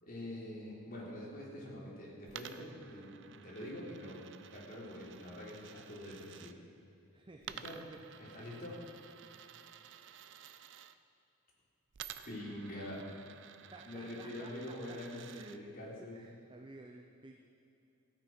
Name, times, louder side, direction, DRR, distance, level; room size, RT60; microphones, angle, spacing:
voice 1, 0.0-4.2 4.5-6.6 7.5-7.8 8.2-8.8 12.3-13.0 13.8-16.2, left 1 dB, 45° left, -5 dB, 3.5 m, -45 dB
Coin (dropping), 2.3-6.5 7.4-10.9 11.9-15.6, right 9 dB, 60° right, 0.5 m, -52 dB
voice 2, 7.1-8.0 8.4-8.6 9.2-9.3 13.7-15.6 16.1-17.4, right 2 dB, 25° right, 3 dB, 0.7 m, -54 dB
15.0 x 9.4 x 6.2 m, 2.8 s
head